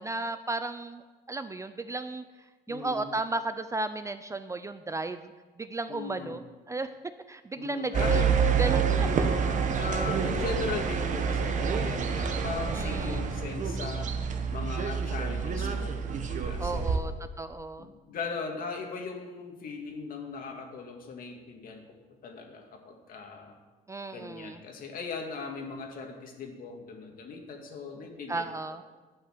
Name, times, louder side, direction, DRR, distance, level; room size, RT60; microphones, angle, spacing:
voice 1, 0.0-2.2 2.7-5.3 5.6-6.4 6.7-6.9 7.3-8.2 8.6-9.3 12.7-13.2 16.6-17.1 17.4-17.9 23.9-24.6 28.3-28.8, right 2 dB, 20° right, 11 dB, 0.4 m, -34 dB
voice 2, 2.7-3.1 5.9-6.4 7.6-8.4 9.1-14.1 14.5-17.1 17.8-21.9 22.2-23.6 24.1-28.5, left 4 dB, 55° left, 3 dB, 2.0 m, -39 dB
sound 1, 7.9-17.0, right 6 dB, 45° right, 1.1 m, -28 dB
11.0 x 5.6 x 7.8 m, 1.3 s
cardioid pair, 110°, 17 cm